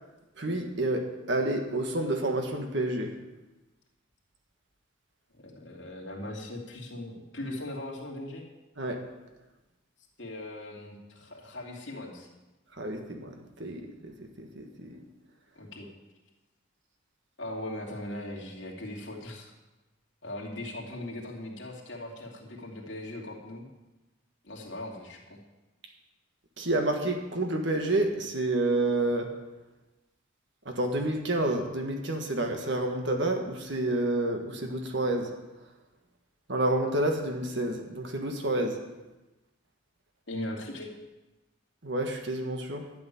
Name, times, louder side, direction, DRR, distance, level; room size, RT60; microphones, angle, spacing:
voice 1, 0.4-3.1 8.8-9.0 12.8-14.1 14.4-15.0 26.6-29.4 30.7-35.3 36.5-38.8 41.8-42.9, right 2 dB, 55° right, 4 dB, 1.7 m, -29 dB
voice 2, 5.4-8.4 10.2-12.3 15.5-15.9 17.4-19.5 20.2-23.7 24.4-25.4 40.3-40.9, left 1 dB, 60° left, -1 dB, 2.8 m, -39 dB
12.0 x 7.0 x 9.9 m, 1.1 s
head